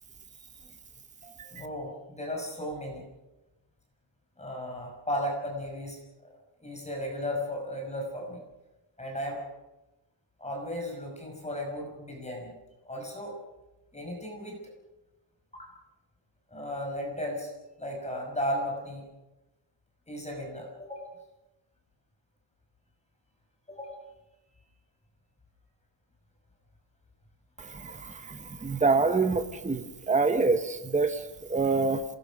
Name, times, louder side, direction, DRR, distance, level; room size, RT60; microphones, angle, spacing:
voice 1, 1.5-3.0 4.4-6.3 6.6-8.4 9.0-9.5 10.4-12.5 12.8-13.4 13.9-14.6 15.5-15.7 16.5-17.5 17.8-19.0 20.1-21.1 23.7-24.0, equal, 15° left, 0 dB, 5.5 m, -35 dB
voice 2, 27.6-31.2 31.5-32.0, right 4 dB, 15° right, 8 dB, 1.1 m, -26 dB
27.0 x 19.5 x 6.2 m, 1.0 s
wide cardioid pair, 170°, 47 cm